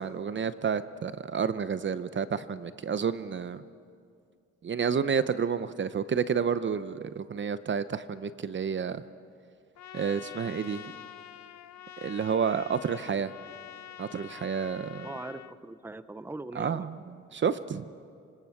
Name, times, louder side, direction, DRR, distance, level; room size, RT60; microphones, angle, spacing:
voice 1, 0.0-3.6 4.6-9.0 9.9-10.9 12.0-13.3 14.0-15.1 16.6-17.0 17.3-17.9, right 6 dB, 40° right, 13 dB, 0.8 m, -30 dB
Trumpet, 9.7-15.5, left 11 dB, 65° left, 0.9 m, -46 dB
voice 2, 15.0-16.9 17.4-17.6, right 2 dB, 5° right, 13 dB, 0.8 m, -41 dB
26.5 x 25.5 x 6.0 m, 2.3 s
cardioid pair, 90°, 30 cm